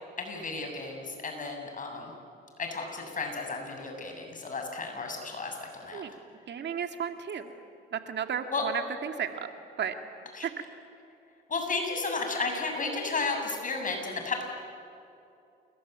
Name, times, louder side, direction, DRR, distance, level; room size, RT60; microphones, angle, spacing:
voice 1, 0.2-2.1 2.6-6.0 8.5-8.6 10.3-10.5 11.5-14.4, left 3 dB, 40° left, 3 dB, 7.3 m, -33 dB
voice 2, 6.5-7.5 7.9-9.5 9.8-9.9 10.4-10.5, right 8 dB, 60° right, 6 dB, 2.2 m, -33 dB
28.5 x 22.0 x 9.3 m, 2.7 s
cardioid pair, 90°, 20 cm